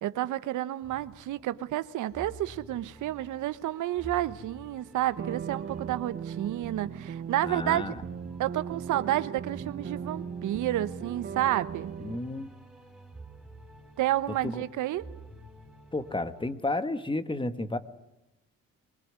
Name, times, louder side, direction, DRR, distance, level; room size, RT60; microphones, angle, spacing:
voice 1, 0.0-7.8 8.4-11.9 14.0-15.0, right 14 dB, 80° right, 1.0 m, -30 dB
sound 1, 0.8-16.5, right 2 dB, ahead, 4.4 m, -51 dB
sound 2, 5.2-12.2, right 7 dB, 40° right, 0.9 m, -38 dB
voice 2, 7.4-8.0 12.0-12.5 14.4-14.6 15.9-17.8, left 2 dB, 15° left, 1.6 m, -32 dB
23.0 x 20.0 x 9.6 m
cardioid pair, 90°, 30 cm